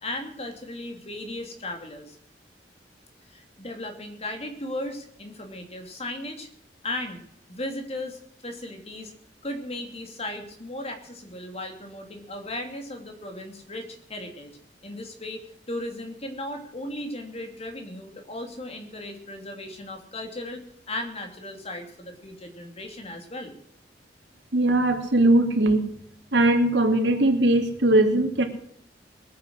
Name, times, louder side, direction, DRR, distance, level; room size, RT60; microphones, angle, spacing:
voice 1, 0.0-2.2 3.3-6.5 6.8-7.2 7.5-9.1 9.4-13.8 14.1-14.5 14.8-15.4 15.7-20.6 20.9-23.5, left 1 dB, 35° left, 4 dB, 2.9 m, -36 dB
voice 2, 24.5-25.9 26.3-28.4, right 1 dB, 85° right, 5 dB, 2.5 m, -20 dB
21.0 x 9.5 x 6.5 m, 0.70 s
head